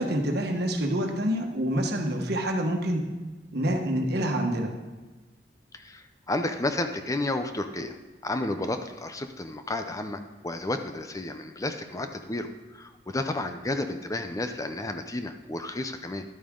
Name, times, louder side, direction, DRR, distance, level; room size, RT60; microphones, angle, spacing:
voice 1, 0.0-3.1 3.5-4.7, equal, 65° right, 3 dB, 1.3 m, -27 dB
voice 2, 5.7-7.9 8.2-16.2, left 2 dB, 20° left, 7 dB, 0.5 m, -32 dB
11.5 x 8.7 x 3.7 m, 1.3 s
head